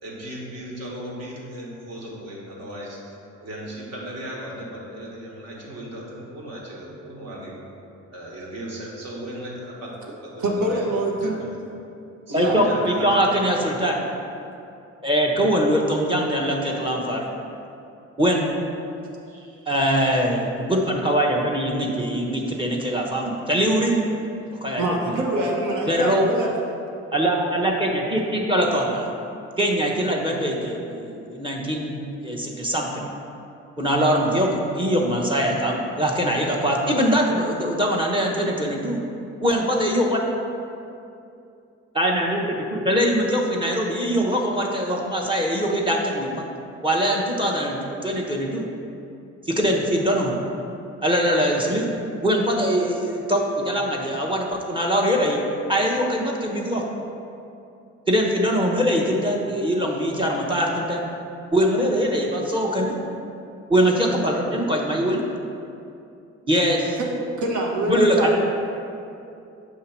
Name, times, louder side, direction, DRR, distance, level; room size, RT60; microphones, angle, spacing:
voice 1, 0.0-3.1 3.4-7.5 8.1-9.9 10.2-11.5 12.3-13.3, right 1 dB, 55° right, -3 dB, 1.5 m, -36 dB
voice 2, 10.4-11.4 12.3-12.6 19.3-19.5 24.8-26.5 67.0-67.1 67.4-68.4, right 1 dB, 75° right, -1 dB, 1.1 m, -24 dB
voice 3, 12.3-14.0 15.0-17.3 18.2-18.5 19.7-24.1 24.6-25.2 25.9-26.3 27.1-29.1 29.6-33.1 33.8-39.0 39.4-40.2 41.9-46.4 46.8-48.6 49.4-50.4 51.0-51.9 52.2-55.4 55.7-56.9 58.1-61.0 61.5-63.0 63.7-65.2 66.5-67.0 67.9-68.4, equal, 15° right, -1 dB, 0.8 m, -22 dB
6.7 x 2.8 x 5.8 m, 2.7 s
cardioid pair, 90°, 30 cm